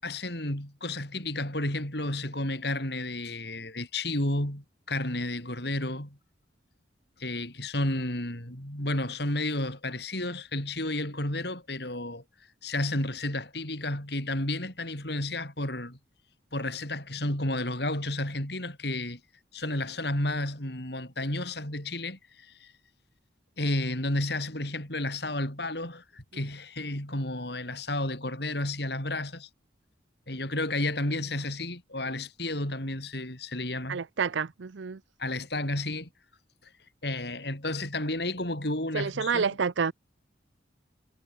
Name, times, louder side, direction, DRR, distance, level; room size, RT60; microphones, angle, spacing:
voice 1, 0.0-6.2 7.2-12.2 12.6-16.0 16.5-19.2 19.5-22.7 23.6-29.5 30.3-34.0 35.2-36.1 37.0-39.6, left 1 dB, 60° left, 6.2 m, -32 dB
voice 2, 33.9-35.0 38.9-39.9, right 5 dB, 75° right, 0.6 m, -28 dB
head